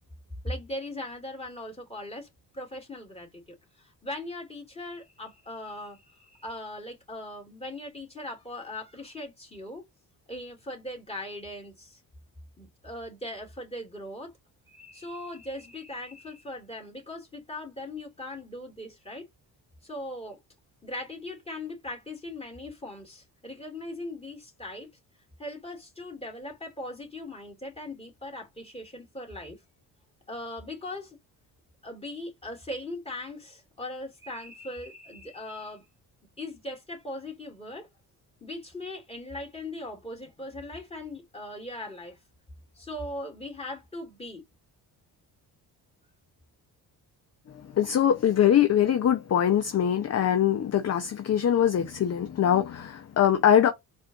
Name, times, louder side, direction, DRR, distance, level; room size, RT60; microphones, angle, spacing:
voice 1, 0.4-2.3 2.5-3.4 3.8-9.8 10.3-12.0 12.6-14.3 14.7-19.3 19.8-20.4 20.8-24.9 25.4-29.6 30.3-31.2 31.8-35.8 36.4-37.9 38.4-42.2 42.8-44.4, left 1 dB, 15° left, 2.5 m, -39 dB
voice 2, 47.5-53.7, left 9 dB, 35° left, 0.7 m, -23 dB
4.2 x 2.6 x 3.6 m
supercardioid pair, 60°, 44 cm